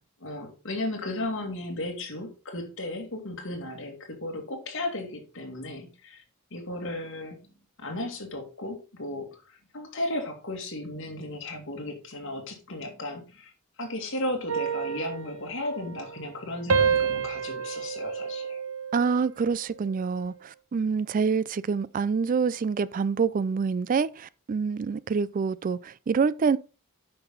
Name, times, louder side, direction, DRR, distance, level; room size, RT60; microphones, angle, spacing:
voice 1, 0.2-6.2 6.5-7.4 7.8-13.5 13.8-18.6, left 1 dB, 60° left, 2.4 m, -35 dB
sound 1, 14.5-16.4 16.7-19.3 19.7-20.1, right 6 dB, 70° right, 1.1 m, -29 dB
voice 2, 18.9-26.6, right 5 dB, 40° right, 0.3 m, -26 dB
9.0 x 5.9 x 3.8 m
head